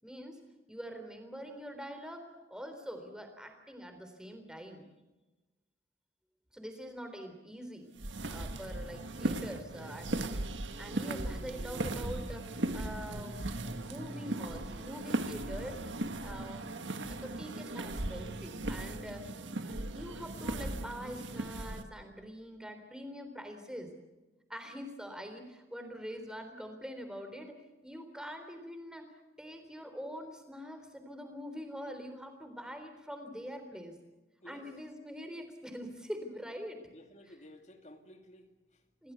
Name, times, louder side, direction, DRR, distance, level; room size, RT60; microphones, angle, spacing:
voice 1, 0.0-0.4 0.7-4.9 6.5-7.9 8.3-10.3 10.6-15.8 16.2-16.7 17.0-19.3 19.7-23.9 24.5-27.6 27.8-29.1 29.4-34.0 34.4-36.8 39.0-39.1, equal, 5° right, 6 dB, 3.7 m, -44 dB
sound 1, 7.9-21.8, right 2 dB, 85° right, 1.6 m, -37 dB
sound 2, 10.7-19.8 20.1-20.3, right 1 dB, 40° right, 2.8 m, -56 dB
voice 2, 36.8-38.8, left 1 dB, 40° left, 5 dB, 2.5 m, -55 dB
27.5 x 18.0 x 8.2 m, 1.1 s
head